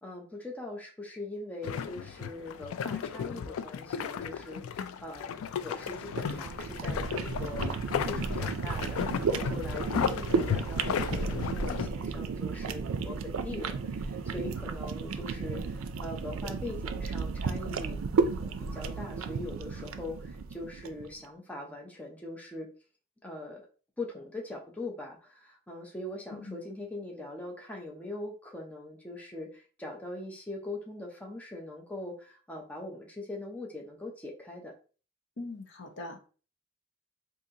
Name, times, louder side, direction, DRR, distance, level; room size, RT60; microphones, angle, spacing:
voice 1, 0.0-7.7 8.0-18.0 18.3-22.7 23.2-23.6 24.0-34.7, left 2 dB, 5° left, 0 dB, 0.6 m, -42 dB
sound 1, 1.6-11.9, left 7 dB, 85° left, 0.3 m, -34 dB
sound 2, 5.8-21.0, right 5 dB, 85° right, 0.4 m, -33 dB
voice 2, 26.3-26.6 35.4-36.2, left 2 dB, 60° left, 3 dB, 0.8 m, -41 dB
3.9 x 2.7 x 2.7 m, 0.37 s
head